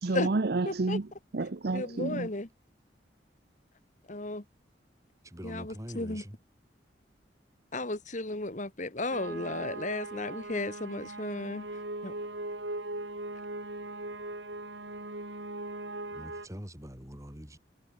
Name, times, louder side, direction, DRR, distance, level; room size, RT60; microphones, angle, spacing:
voice 1, 0.0-2.3, right 3 dB, 60° right, 0.7 m, -30 dB
voice 2, 0.7-1.0 1.7-2.5 4.1-4.4 5.4-6.2 7.7-11.6 12.0-12.1, left 2 dB, 45° left, 1.9 m, -34 dB
voice 3, 5.2-6.4 16.1-17.6, equal, 15° right, 4.3 m, -44 dB
sound 1, 9.1-16.5, right 2 dB, 75° right, 6.2 m, -39 dB
head